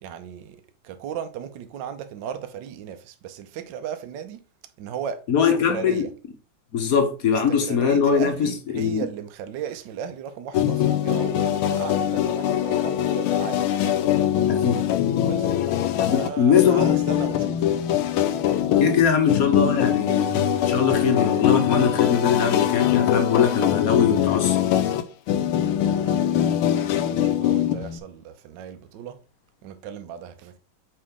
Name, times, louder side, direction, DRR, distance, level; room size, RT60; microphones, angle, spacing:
voice 1, 0.0-4.4 4.8-6.1 7.3-13.7 15.2-15.5 16.1-17.8 25.3-25.4 26.0-29.2 29.6-30.5, right 8 dB, 70° right, 1.3 m, -36 dB
voice 2, 5.3-6.1 6.7-9.1 14.5-14.8 16.0-17.0 18.8-24.6, left 6 dB, 55° left, 1.0 m, -22 dB
sound 1, 10.5-28.0, left 11 dB, 80° left, 1.5 m, -22 dB
6.1 x 4.9 x 3.6 m
omnidirectional pair, 2.4 m